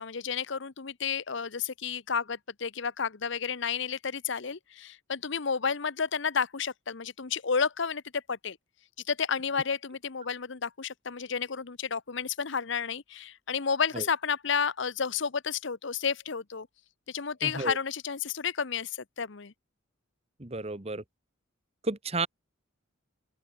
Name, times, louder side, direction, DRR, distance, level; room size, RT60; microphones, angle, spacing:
voice 1, 0.0-8.6 9.1-16.7 17.1-19.5, left 6 dB, 60° left, 0.9 m, -31 dB
voice 2, 17.4-17.8 20.4-21.0 21.8-22.3, right 3 dB, 30° right, 1.5 m, -32 dB
open air
head